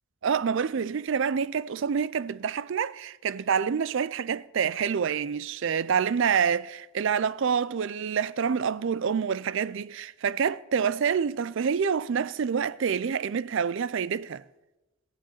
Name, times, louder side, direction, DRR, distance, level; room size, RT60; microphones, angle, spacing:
voice 1, 0.2-14.4, right 6 dB, 55° right, 0.4 m, -27 dB
17.5 x 7.6 x 7.2 m
head